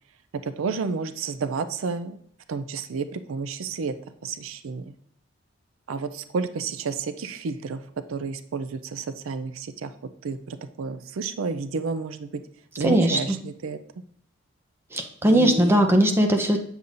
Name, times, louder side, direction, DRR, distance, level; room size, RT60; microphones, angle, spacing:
voice 1, 0.4-2.2 2.5-3.9 4.2-5.0 5.9-7.8 8.1-9.9 10.2-12.4 12.8-13.8 15.2-15.8, right 4 dB, 85° right, 11 dB, 0.4 m, -31 dB
voice 2, 12.8-13.2 14.9-16.6, right 1 dB, 10° right, 3 dB, 0.7 m, -19 dB
8.1 x 6.9 x 2.6 m, 0.64 s
head